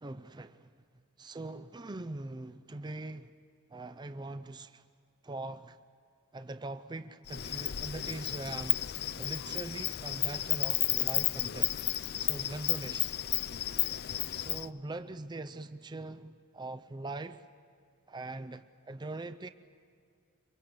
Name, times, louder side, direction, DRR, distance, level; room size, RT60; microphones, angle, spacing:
voice 1, 0.0-0.7 1.2-3.3 3.7-4.8 5.2-5.8 6.3-8.9 9.2-11.7 12.2-13.1 14.3-17.4 18.1-19.5, right 2 dB, 20° right, 0.5 m, -42 dB
Insect, 7.3-14.7, left 14 dB, 50° left, 0.5 m, -32 dB
24.5 x 23.5 x 8.0 m
head